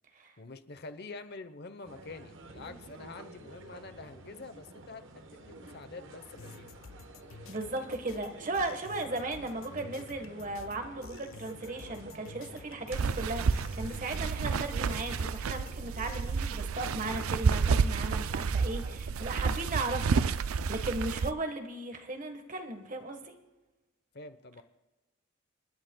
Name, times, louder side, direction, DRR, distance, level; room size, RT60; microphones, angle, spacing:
voice 1, 0.4-6.7 24.1-24.6, left 3 dB, 50° left, 10 dB, 0.9 m, -46 dB
sound 1, 1.8-19.0, right 2 dB, 60° right, 1.1 m, -49 dB
sound 2, 6.4-16.3, left 5 dB, 70° left, 0.6 m, -52 dB
voice 2, 7.5-20.4 20.7-23.3, right 2 dB, 40° right, 6 dB, 1.3 m, -36 dB
sound 3, 12.9-21.3, right 5 dB, 85° right, 0.4 m, -30 dB
29.5 x 10.5 x 2.3 m, 1.1 s
head